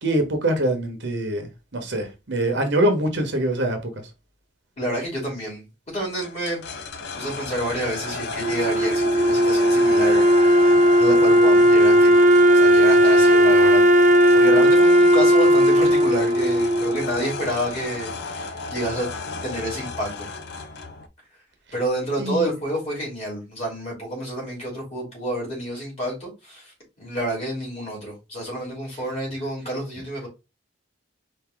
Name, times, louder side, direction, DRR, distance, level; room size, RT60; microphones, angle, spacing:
voice 1, 0.0-3.9 22.2-22.5, right 1 dB, 55° right, 1.0 m, -24 dB
voice 2, 4.8-6.6 7.2-12.3 12.5-19.1 19.4-20.3 21.7-26.7 27.0-30.3, right 1 dB, 30° left, 3.0 m, -29 dB
sound 1, 6.2-21.1, left 3 dB, 55° left, 0.5 m, -33 dB
Wind instrument woodwind instrument, 8.4-17.5, equal, 35° right, 0.4 m, -16 dB
4.5 x 2.7 x 3.8 m
head